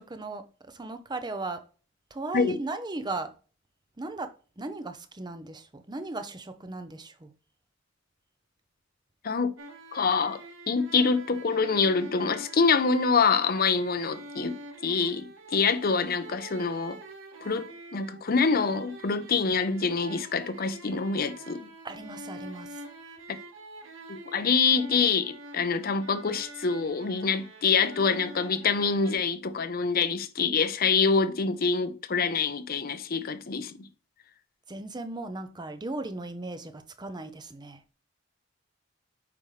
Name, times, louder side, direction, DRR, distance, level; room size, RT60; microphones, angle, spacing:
voice 1, 0.0-1.6 2.1-3.3 4.0-7.3 21.8-22.8 34.7-37.8, right 2 dB, 20° right, 0.7 m, -37 dB
voice 2, 9.2-9.5 9.9-14.6 14.8-17.0 17.4-21.6 24.1-33.8, left 5 dB, 50° left, 0.7 m, -26 dB
sound 1, 9.6-29.1, right 2 dB, 90° right, 1.4 m, -46 dB
8.5 x 5.2 x 3.2 m
head